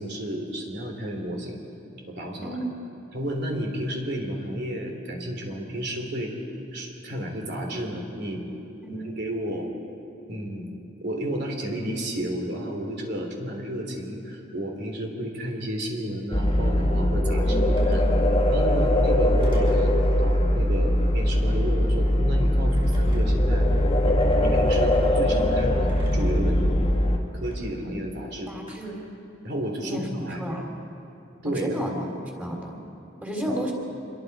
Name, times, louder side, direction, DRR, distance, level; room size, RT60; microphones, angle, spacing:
voice 1, 0.0-1.6 2.1-2.6 3.1-6.3 6.7-8.4 8.9-9.7 10.3-10.7 11.0-18.0 18.5-23.7 24.0-26.9 27.3-28.5 29.4-30.4 31.4-31.9 33.5-33.6, equal, 55° right, 1 dB, 3.3 m, -32 dB
voice 2, 2.4-2.7 8.8-9.2 17.4-18.2 28.5-29.0 29.8-30.1 30.4-30.7 31.4-32.0 32.3-32.8 33.2-33.7, right 1 dB, 10° right, 0 dB, 3.7 m, -33 dB
sound 1, 16.3-27.2, left 1 dB, 30° left, 1.8 m, -21 dB
Telephone, 17.8-18.1 19.4-19.9 21.2-21.5 22.7-23.5 24.4-24.8 25.9-26.4 27.4-27.6 28.7-29.1, right 1 dB, 25° right, 6.6 m, -46 dB
26.5 x 22.0 x 4.8 m, 2.9 s
head